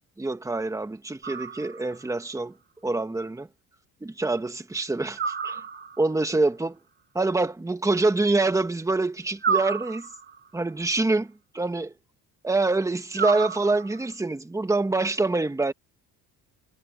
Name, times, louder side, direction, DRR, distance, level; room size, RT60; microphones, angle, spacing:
voice 1, 0.2-2.5 2.8-3.5 4.0-5.6 6.0-6.8 7.2-10.1 10.5-11.3 11.5-11.9 12.4-15.7, right 2 dB, 10° right, 1.7 m, -25 dB
sound 1, 1.2-2.1 5.2-6.2 9.4-10.5 13.1-14.1, right 6 dB, 30° right, 1.3 m, -30 dB
cardioid pair, 135°, 37 cm